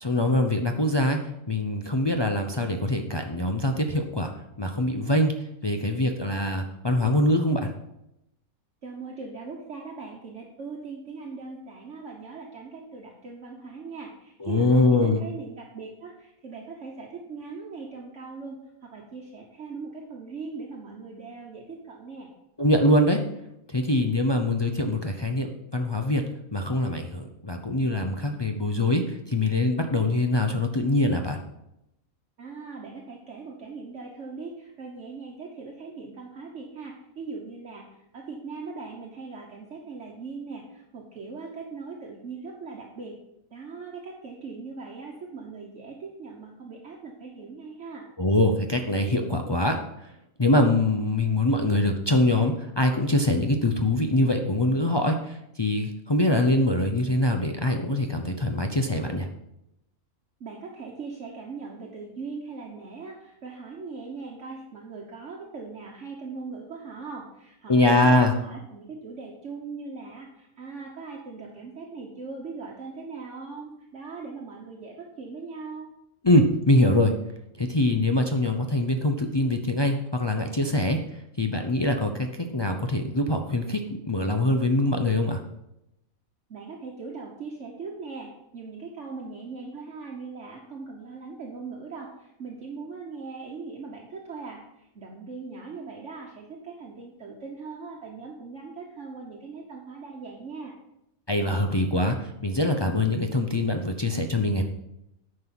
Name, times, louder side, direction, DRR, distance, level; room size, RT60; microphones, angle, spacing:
voice 1, 0.0-1.2 1.5-4.3 4.6-5.3 5.6-7.7 14.4-15.2 22.6-23.2 23.7-26.2 26.5-31.4 48.2-49.8 50.4-59.3 67.7-68.3 76.2-77.1 77.6-81.0 81.4-85.4 101.3-104.6, left 1 dB, 35° left, 4 dB, 0.4 m, -23 dB
voice 2, 8.8-22.3 32.4-43.2 43.5-48.1 60.4-75.9 86.5-100.7, right 4 dB, 55° right, -1 dB, 1.4 m, -40 dB
9.4 x 5.4 x 6.0 m, 0.85 s
omnidirectional pair, 1.5 m